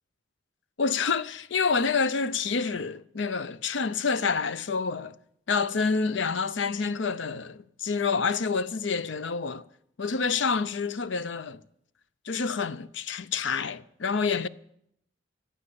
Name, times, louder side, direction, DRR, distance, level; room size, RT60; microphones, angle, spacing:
voice 1, 0.8-5.1 5.5-9.6 10.0-11.6 12.3-14.5, left 5 dB, 65° left, 0.6 m, -28 dB
15.0 x 11.0 x 8.5 m
head